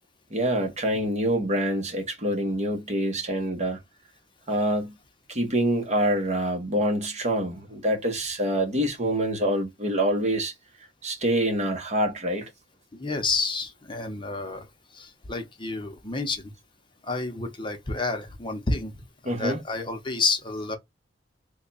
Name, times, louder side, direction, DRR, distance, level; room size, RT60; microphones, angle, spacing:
voice 1, 0.3-3.8 4.5-5.0 5.3-10.5 11.0-12.5 19.2-19.6, right 1 dB, 40° right, 1.0 m, -26 dB
voice 2, 13.0-14.6 15.0-16.4 17.1-18.9 19.2-20.8, left 3 dB, 25° left, 0.8 m, -29 dB
3.4 x 2.3 x 4.0 m
head